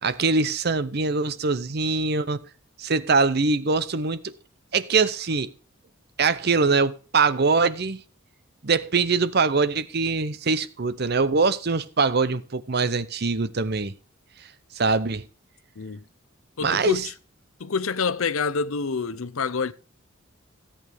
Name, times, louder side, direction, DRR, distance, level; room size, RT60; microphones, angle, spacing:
voice 1, 0.0-2.4 2.8-4.3 4.7-5.5 6.2-8.0 8.6-14.0 14.7-15.3 16.6-17.1, right 4 dB, 50° right, 0.7 m, -23 dB
voice 2, 15.8-16.1 16.6-17.1 17.6-19.7, left 5 dB, 85° left, 0.7 m, -27 dB
16.5 x 8.5 x 3.6 m
head